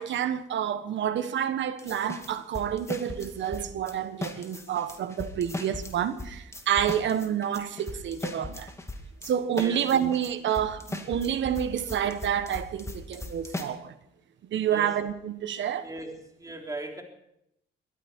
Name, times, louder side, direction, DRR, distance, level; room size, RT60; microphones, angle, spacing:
voice 1, 0.0-8.7 9.2-14.0 14.5-15.9, right 9 dB, 65° right, 1.3 m, -29 dB
sound 1, 1.8-4.0 4.2-13.6, left 2 dB, 15° left, 2.4 m, -38 dB
voice 2, 15.8-17.0, right 1 dB, 15° right, 3.6 m, -38 dB
22.5 x 13.5 x 4.5 m
cardioid pair, 90°, 20 cm